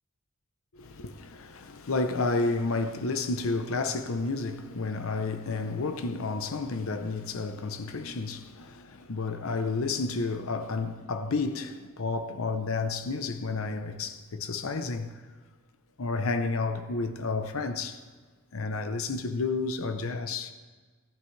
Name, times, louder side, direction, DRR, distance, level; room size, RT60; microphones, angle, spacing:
voice 1, 0.7-15.2 16.0-18.0 18.5-20.5, left 3 dB, 80° left, 0.7 m, -31 dB
17.0 x 11.5 x 3.3 m
head